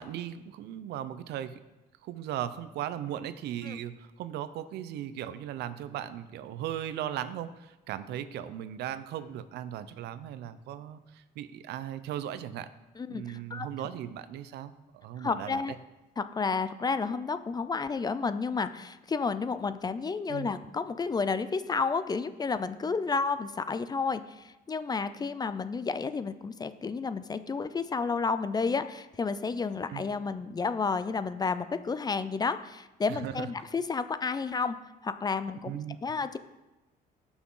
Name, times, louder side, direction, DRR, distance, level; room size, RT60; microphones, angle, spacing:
voice 1, 0.0-1.6 2.0-12.7 13.1-15.6 20.3-20.5 29.9-30.0 33.1-33.5 35.6-36.0, right 11 dB, 80° right, 13 dB, 0.7 m, -37 dB
voice 2, 13.0-13.7 15.2-15.7 16.2-34.8 35.0-35.7 36.0-36.4, left 4 dB, 25° left, 12 dB, 0.5 m, -31 dB
17.0 x 6.2 x 3.9 m, 1.0 s
cardioid pair, 110°, 17 cm